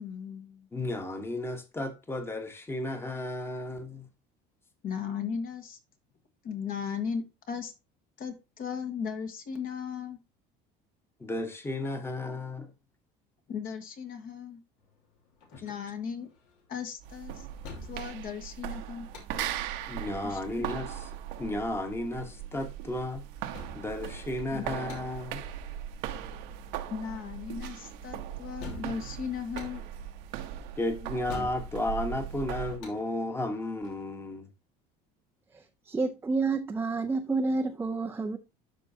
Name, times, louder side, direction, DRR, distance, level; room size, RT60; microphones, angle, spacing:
voice 1, 0.0-0.7 4.8-5.8 6.4-7.7 8.2-10.2 12.2-12.3 13.5-14.6 15.6-16.3 16.7-17.5 17.8-19.1 20.2-20.4 24.5-24.6 26.9-29.8, left 6 dB, 50° left, 1.6 m, -36 dB
voice 2, 0.7-4.1 11.2-12.7 15.5-15.6 19.9-21.1 21.4-23.2 23.7-25.4 30.8-34.5, left 1 dB, 15° left, 1.2 m, -33 dB
sound 1, 14.8-34.0, left 2 dB, 75° left, 2.6 m, -49 dB
sound 2, 17.0-32.8, right 10 dB, 75° right, 1.0 m, -39 dB
voice 3, 35.5-38.4, right 3 dB, 10° right, 0.5 m, -29 dB
12.0 x 4.5 x 2.7 m
cardioid pair, 130°, 19 cm